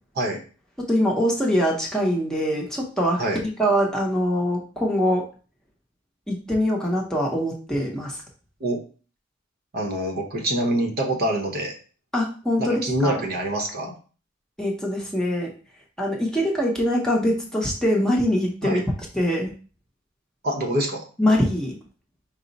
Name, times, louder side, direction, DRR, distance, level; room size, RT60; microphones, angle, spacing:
voice 1, 0.9-5.2 6.3-8.2 12.1-13.2 14.6-15.5 16.0-18.8 19.1-19.5 21.2-21.8, equal, 5° left, -2 dB, 0.7 m, -23 dB
voice 2, 9.7-11.7 12.6-13.9 18.6-18.8 20.4-21.0, right 1 dB, 50° right, 2 dB, 0.8 m, -25 dB
4.8 x 2.1 x 3.9 m, 0.37 s
head